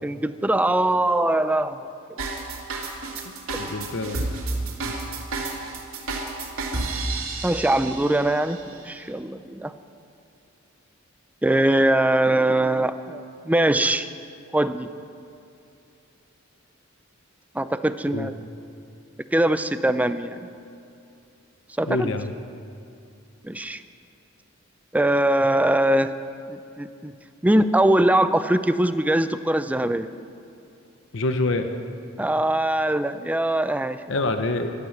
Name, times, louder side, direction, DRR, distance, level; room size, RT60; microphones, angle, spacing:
voice 1, 0.0-1.8 3.6-3.8 7.4-9.7 11.4-14.1 14.5-14.9 17.5-18.3 19.3-20.5 21.8-22.1 23.4-23.8 24.9-26.1 26.5-27.1 27.4-30.1 32.2-34.2, right 1 dB, 5° right, 11 dB, 0.5 m, -22 dB
sound 1, 2.2-8.5, right 2 dB, 80° right, 2.5 m, -31 dB
voice 2, 3.5-4.2 4.8-4.9 18.1-18.3 21.9-22.3 31.1-31.7 34.1-34.7, left 2 dB, 65° left, 7 dB, 0.9 m, -26 dB
15.0 x 12.0 x 7.2 m, 2.6 s
head